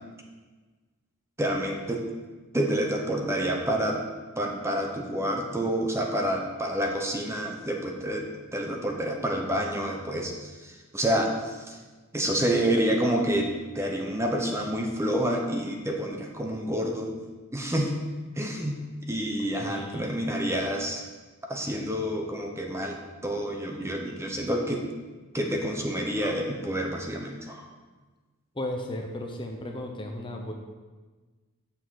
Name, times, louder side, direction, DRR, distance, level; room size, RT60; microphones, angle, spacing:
voice 1, 1.4-2.1 2.5-4.0 4.4-11.8 12.1-17.1 17.5-17.9 18.3-18.8 19.1-21.0 21.5-24.8 25.3-27.6, right 1 dB, 10° right, 1 dB, 0.9 m, -28 dB
voice 2, 19.6-20.1 28.5-30.5, left 1 dB, 20° left, 2 dB, 0.8 m, -35 dB
7.3 x 6.4 x 6.4 m, 1.3 s
head